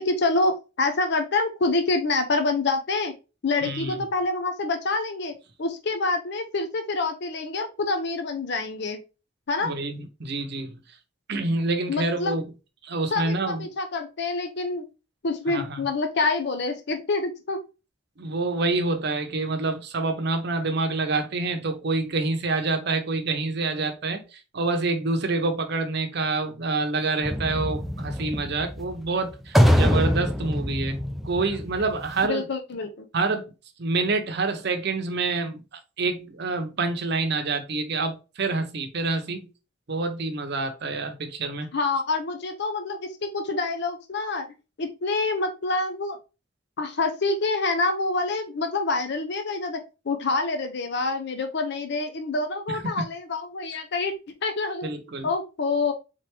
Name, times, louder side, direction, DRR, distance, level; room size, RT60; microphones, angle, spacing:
voice 1, 0.0-3.1 3.4-5.3 5.6-9.0 9.5-9.7 11.9-12.4 13.1-14.9 15.2-17.6 32.2-33.1 41.7-44.5 44.8-46.2 46.8-54.1 54.4-54.9 55.2-55.9, left 3 dB, 60° left, 0.6 m, -26 dB
voice 2, 3.6-4.0 9.6-10.7 11.3-12.5 12.8-13.6 15.5-15.9 18.2-31.0 31.2-32.4 33.1-33.5 33.8-35.6 36.0-39.5 39.9-41.7 52.7-53.0 54.8-55.3, right 3 dB, 60° right, 0.7 m, -27 dB
sound 1, 27.2-32.3, equal, ahead, 0.4 m, -24 dB
3.6 x 3.2 x 3.2 m
head